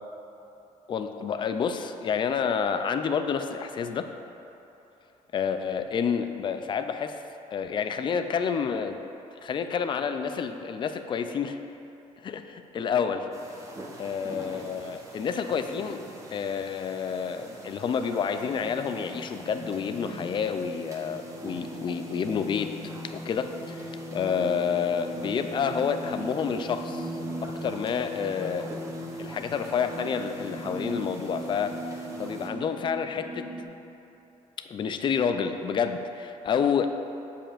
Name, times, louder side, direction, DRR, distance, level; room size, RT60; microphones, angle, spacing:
voice 1, 0.9-4.1 5.3-7.2 7.5-9.0 9.4-11.6 12.2-13.3 14.0-16.0 16.3-22.8 23.0-27.1 27.5-28.8 29.2-33.5 34.6-36.9, left 6 dB, 35° left, 8 dB, 0.3 m, -29 dB
sound 1, 13.3-32.5, right 1 dB, 20° right, 0.9 m, -45 dB
sound 2, 18.3-33.6, equal, 10° left, 1.1 m, -39 dB
7.6 x 6.7 x 2.5 m, 2.9 s
cardioid pair, 120°, 14 cm